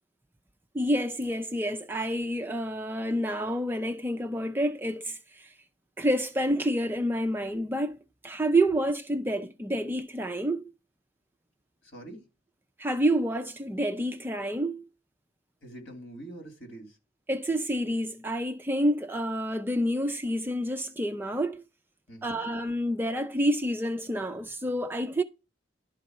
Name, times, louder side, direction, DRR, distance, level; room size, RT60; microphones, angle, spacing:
voice 1, 0.7-5.5 6.0-10.7 12.8-14.8 17.3-21.6 22.2-25.2, right 1 dB, 10° right, 0.4 m, -28 dB
voice 2, 11.8-12.2 15.6-17.0 22.1-22.4, right 1 dB, 60° left, 3.3 m, -44 dB
11.5 x 4.0 x 6.6 m
head